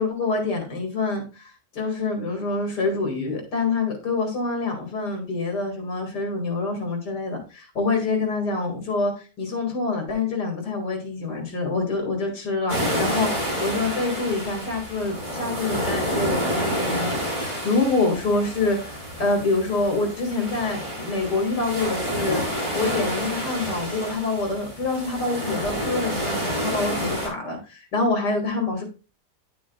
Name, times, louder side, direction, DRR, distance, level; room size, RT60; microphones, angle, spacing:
voice 1, 0.0-22.4 22.7-28.8, left 3 dB, 75° left, 2 dB, 2.5 m, -26 dB
sound 1, 12.7-27.3, equal, 25° right, 4.0 m, -29 dB
10.0 x 6.1 x 2.3 m, 0.32 s
omnidirectional pair, 1.8 m